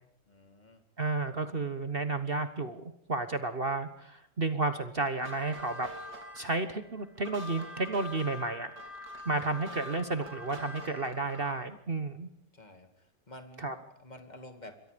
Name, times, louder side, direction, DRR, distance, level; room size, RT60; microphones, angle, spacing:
voice 1, 0.3-0.8 12.5-14.8, left 1 dB, 25° left, 7 dB, 2.6 m, -50 dB
voice 2, 1.0-5.9 6.3-8.7 9.2-12.3 13.6-13.7, right 3 dB, 35° right, 10 dB, 1.3 m, -32 dB
sound 1, 5.1-11.7, left 1 dB, 75° right, 3.7 m, -45 dB
27.0 x 23.0 x 5.2 m, 0.69 s
omnidirectional pair, 1.8 m